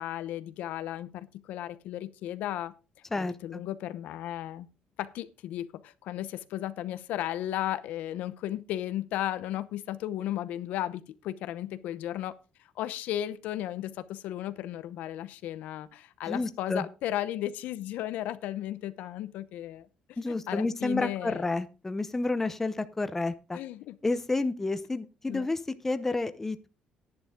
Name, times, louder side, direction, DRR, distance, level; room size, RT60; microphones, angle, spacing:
voice 1, 0.0-2.7 3.1-4.7 5.0-12.3 12.6-20.2 20.5-21.6 23.5-24.0 25.3-25.5, left 13 dB, 75° left, 0.8 m, -35 dB
voice 2, 3.1-3.6 16.3-16.8 20.2-23.6 24.0-26.7, left 3 dB, 15° left, 0.7 m, -30 dB
11.0 x 10.5 x 3.7 m
cardioid pair, 140°, 3 cm